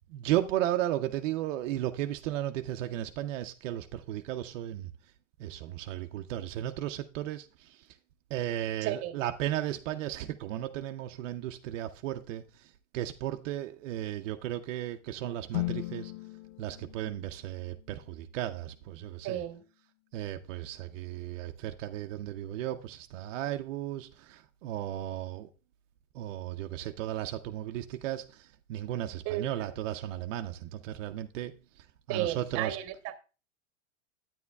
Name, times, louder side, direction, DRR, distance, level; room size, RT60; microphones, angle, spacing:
voice 1, 0.1-4.9 5.4-7.8 8.3-16.1 16.6-19.4 20.1-25.5 26.1-31.5 31.8-32.8, right 12 dB, 75° right, 0.6 m, -35 dB
voice 2, 8.8-9.1 19.2-19.6 29.2-29.7 32.1-33.1, right 12 dB, 40° right, 1.0 m, -34 dB
sound 1, 15.5-19.6, left 19 dB, 80° left, 0.5 m, -39 dB
9.6 x 9.2 x 2.3 m
supercardioid pair, 140°, 38 cm